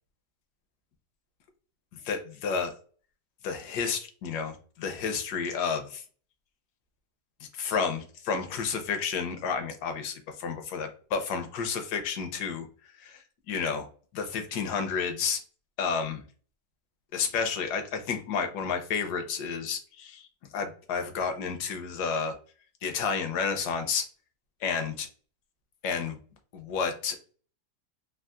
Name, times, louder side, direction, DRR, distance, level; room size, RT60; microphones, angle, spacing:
voice 1, 1.9-2.7 3.4-6.0 7.5-12.7 13.0-13.9 14.1-15.4 15.8-16.2 17.1-20.3 20.5-22.4 22.8-24.1 24.6-25.1 25.8-26.2 26.5-27.2, left 6 dB, 75° left, 7 dB, 1.2 m, -31 dB
3.6 x 2.3 x 2.3 m, 0.41 s
omnidirectional pair, 1.8 m